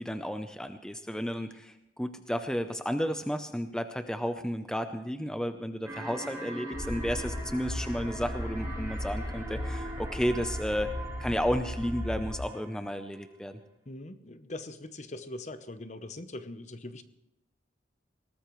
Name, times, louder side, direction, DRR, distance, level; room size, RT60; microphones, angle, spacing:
voice 1, 0.0-10.9 11.2-13.6, equal, 5° left, 8 dB, 0.6 m, -32 dB
sound 1, 5.8-13.1, right 1 dB, 15° right, 2.7 m, -42 dB
sound 2, 6.7-12.4, left 1 dB, 70° left, 5.8 m, -36 dB
voice 2, 13.9-17.0, left 2 dB, 40° left, 10 dB, 0.8 m, -41 dB
20.5 x 18.0 x 3.2 m, 0.91 s
head